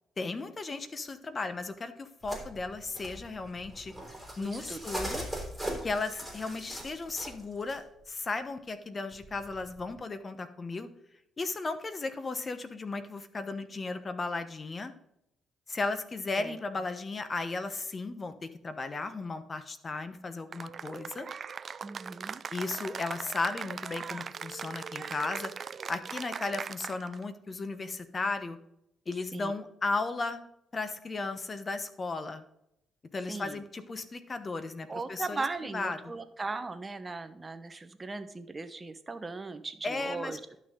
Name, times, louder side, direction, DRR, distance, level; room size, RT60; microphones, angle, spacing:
voice 1, 0.2-3.9 4.4-5.2 5.8-10.9 11.4-14.9 15.7-21.3 22.5-25.5 25.9-28.6 29.1-30.5 30.7-32.4 33.1-35.4 35.7-36.0 39.8-40.4, left 3 dB, 35° left, 11 dB, 1.0 m, -35 dB
sound 1, 2.2-7.8 9.1-10.0, equal, 5° left, 3.8 m, -40 dB
voice 2, 4.4-4.8 16.3-16.5 21.8-22.4 29.3-29.5 33.3-33.6 34.9-40.4, right 3 dB, 25° right, 10 dB, 1.0 m, -38 dB
Cheering / Applause, 20.5-27.2, right 6 dB, 45° right, 0.4 m, -40 dB
11.5 x 6.3 x 3.8 m, 0.82 s
cardioid pair, 90°, 0 cm